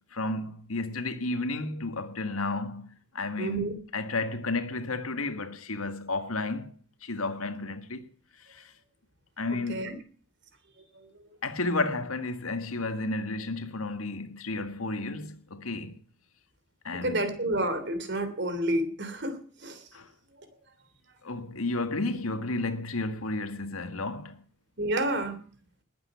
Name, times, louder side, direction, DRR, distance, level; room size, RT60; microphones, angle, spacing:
voice 1, 0.0-2.9 3.1-6.7 7.0-8.1 8.5-8.7 9.4-9.9 11.4-16.0 16.8-17.3 19.9-20.1 21.2-24.4, left 2 dB, 85° left, 1.7 m, -32 dB
voice 2, 3.4-3.8 9.7-9.9 10.9-11.3 17.0-19.8 24.8-25.4, right 1 dB, 55° right, 3.1 m, -30 dB
20.0 x 8.7 x 7.0 m
head